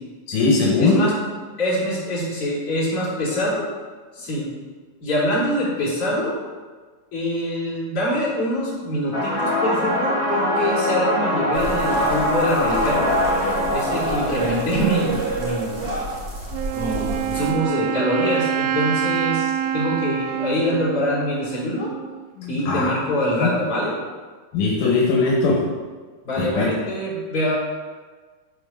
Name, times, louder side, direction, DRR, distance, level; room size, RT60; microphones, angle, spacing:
voice 1, 0.3-1.0 22.4-22.9 23.4-23.5 24.5-25.6 26.4-26.7, left 3 dB, 80° left, -3 dB, 3.0 m, -20 dB
voice 2, 0.8-1.1 1.6-3.6 4.1-4.5 5.0-6.3 7.1-13.1 13.7-16.0 16.7-21.9 22.5-23.9 26.2-27.6, equal, 45° left, -7 dB, 4.9 m, -24 dB
sound 1, 9.1-16.6, left 1 dB, 15° left, 2.9 m, -24 dB
sound 2, 11.5-17.5, right 2 dB, 50° right, 3.8 m, -28 dB
Wind instrument woodwind instrument, 16.5-22.3, right 10 dB, 80° right, 2.0 m, -26 dB
13.5 x 4.9 x 7.2 m, 1.4 s
omnidirectional pair, 3.5 m